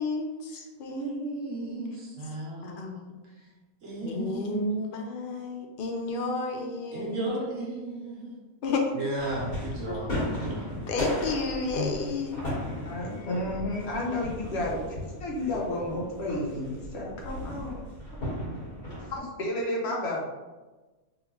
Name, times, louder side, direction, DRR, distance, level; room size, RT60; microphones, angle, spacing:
voice 1, 0.0-1.1 2.6-3.2 4.0-7.1 8.6-8.9 9.9-10.0 10.9-12.5, left 3 dB, 70° left, 2 dB, 0.5 m, -31 dB
voice 2, 0.9-3.1 3.8-4.8 6.9-8.3 8.9-10.7, right 2 dB, 65° right, -4 dB, 1.4 m, -35 dB
sound 1, 9.1-19.2, equal, 90° left, 2.2 m, -36 dB
voice 3, 12.8-14.8 15.2-17.8 18.2-18.3 19.1-20.2, left 1 dB, 50° left, -2 dB, 1.1 m, -31 dB
3.7 x 3.3 x 3.0 m, 1.2 s
omnidirectional pair, 1.5 m